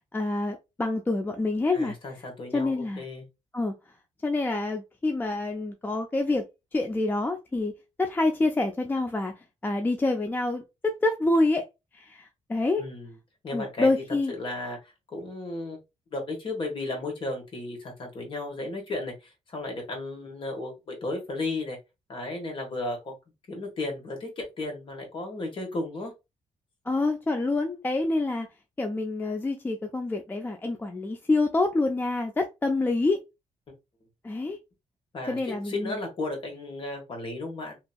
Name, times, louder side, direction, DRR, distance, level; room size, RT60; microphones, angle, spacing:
voice 1, 0.1-1.9 2.5-3.0 3.5-3.7 4.2-6.5 6.7-7.7 8.0-9.3 9.6-11.7 11.9-12.8 13.5-14.3 26.9-28.5 28.8-33.2 34.2-34.6 35.3-36.0, left 2 dB, 15° left, 0.3 m, -27 dB
voice 2, 1.7-3.2 12.8-13.1 13.4-13.9 14.3-14.8 15.1-15.8 16.1-21.8 22.1-23.1 23.5-26.1 35.1-37.8, left 2 dB, 45° left, 1.3 m, -34 dB
2.9 x 2.6 x 2.3 m
cardioid pair, 115°, 12 cm